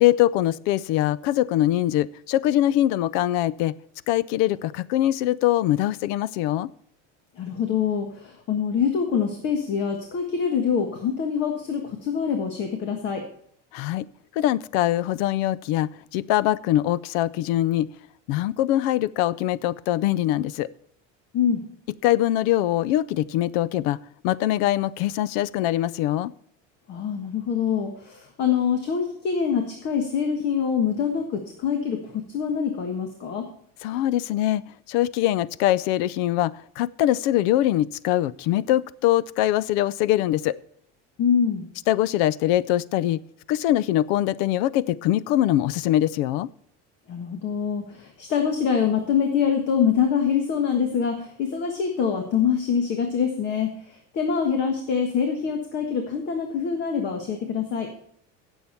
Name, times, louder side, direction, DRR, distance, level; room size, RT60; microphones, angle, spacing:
voice 1, 0.0-3.7 4.1-6.7 13.7-14.0 14.4-17.9 18.3-20.7 22.0-24.0 24.2-26.3 33.8-34.6 34.9-40.6 41.9-43.2 43.5-46.5, left 13 dB, 65° left, 21 dB, 0.5 m, -23 dB
voice 2, 7.4-13.2 21.3-21.6 26.9-33.5 41.2-41.6 47.1-53.7 54.1-57.9, left 7 dB, 35° left, 4 dB, 1.5 m, -25 dB
16.5 x 7.2 x 4.4 m, 0.67 s
cardioid pair, 180°, 30 cm